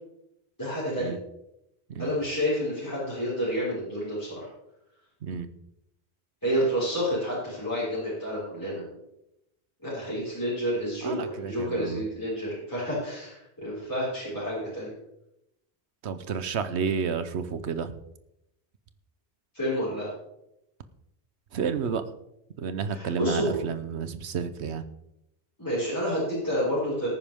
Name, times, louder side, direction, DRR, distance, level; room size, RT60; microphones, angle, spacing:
voice 1, 0.6-1.1 2.0-4.5 6.4-8.9 9.8-14.9 19.5-20.1 22.9-23.6 25.6-27.1, equal, 15° left, -10 dB, 5.3 m, -29 dB
voice 2, 11.0-12.0 16.0-17.9 21.5-22.0 22.6-24.8, right 6 dB, 80° right, 11 dB, 1.2 m, -31 dB
18.5 x 9.8 x 3.6 m, 0.84 s
omnidirectional pair, 1.1 m